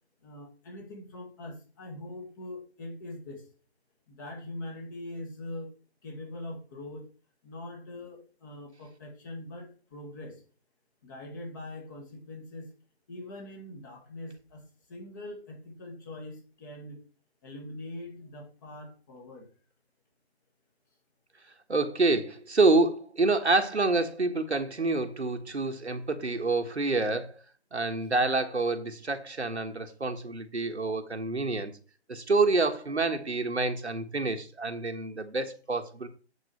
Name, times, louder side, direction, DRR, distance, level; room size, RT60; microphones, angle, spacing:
voice 1, 0.2-3.4 4.1-5.7 6.0-7.1 7.4-10.4 11.0-12.7 13.1-14.6 14.9-17.0 17.4-19.5, left 1 dB, 20° left, 1.6 m, -42 dB
voice 2, 21.7-27.3 27.7-31.7 32.1-36.1, right 3 dB, 75° right, 1.4 m, -27 dB
8.5 x 6.0 x 4.3 m
figure-of-eight pair, 150°, 34 cm